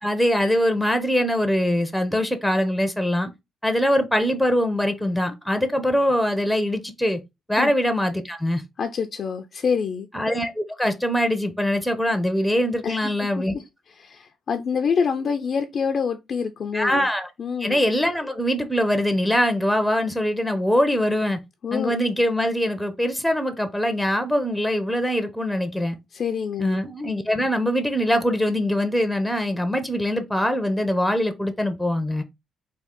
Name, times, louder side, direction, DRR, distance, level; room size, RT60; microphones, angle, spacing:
voice 1, 0.0-3.3 3.6-7.2 7.5-8.6 10.1-13.5 16.7-17.3 17.6-21.4 21.7-25.9 26.6-32.2, equal, ahead, 0.6 m, -23 dB
voice 2, 8.8-10.1 12.8-13.6 14.0-17.1 17.4-17.8 21.6-22.0 26.1-26.8, left 6 dB, 55° left, 0.4 m, -26 dB
3.6 x 2.4 x 3.5 m
cardioid pair, 90°, 0 cm